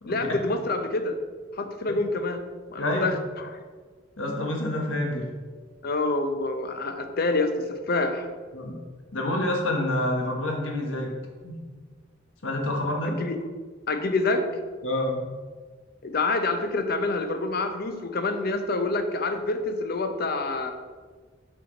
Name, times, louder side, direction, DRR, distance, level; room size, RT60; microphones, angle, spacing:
voice 1, 0.1-1.2 1.5-2.4 2.7-3.6 5.8-8.3 13.0-13.4 13.9-14.5 16.0-20.7, left 2 dB, 55° left, 7 dB, 0.7 m, -27 dB
voice 2, 4.2-5.3 8.5-8.8 9.1-11.1 11.4-11.6 12.4-13.2 14.8-15.2, left 1 dB, 80° left, 1 dB, 1.3 m, -28 dB
6.3 x 5.9 x 3.9 m, 1.5 s
head